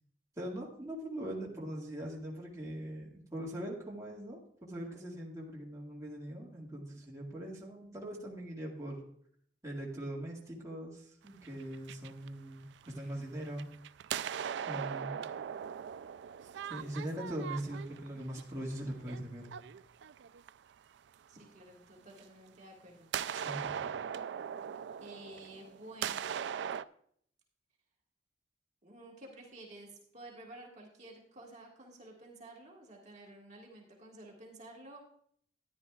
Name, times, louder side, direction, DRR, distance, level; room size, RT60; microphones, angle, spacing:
voice 1, 0.4-9.0 9.6-13.7 14.7-15.2 16.7-19.5 23.3-23.7, right 1 dB, 20° right, -4 dB, 1.9 m, -41 dB
sound 1, 11.3-13.0 13.4-20.7 22.2-22.3 23.1-26.8, right 8 dB, 75° right, 0.3 m, -40 dB
voice 2, 21.3-23.1 25.0-26.5 28.8-35.0, right 1 dB, 40° right, -2 dB, 1.8 m, -52 dB
13.5 x 10.0 x 2.4 m, 0.64 s
head